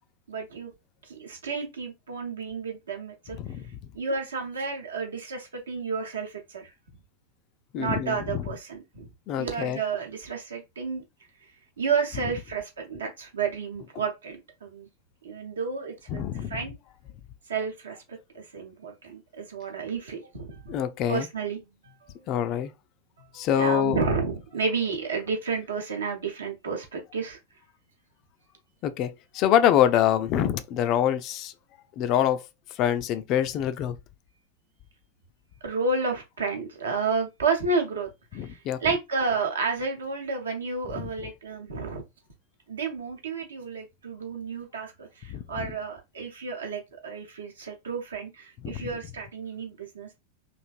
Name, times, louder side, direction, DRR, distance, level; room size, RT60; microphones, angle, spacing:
voice 1, 0.3-0.7 1.1-3.4 3.9-6.7 7.8-9.1 9.4-11.0 11.8-14.9 15.2-16.2 16.5-16.7 17.5-20.8 21.1-22.3 23.3-27.4 35.6-42.0 42.7-50.2, right 4 dB, 70° right, 0.8 m, -31 dB
voice 2, 3.3-3.7 7.7-8.5 9.3-9.8 12.2-12.4 13.9-14.1 16.1-16.7 20.7-21.3 22.3-22.7 23.3-24.1 28.8-31.5 32.0-32.5 32.7-34.0 38.3-39.0 41.0-41.1 45.3-45.7 48.6-48.9, left 10 dB, 40° left, 0.3 m, -26 dB
3.1 x 2.5 x 2.4 m
figure-of-eight pair, 90°, 0 cm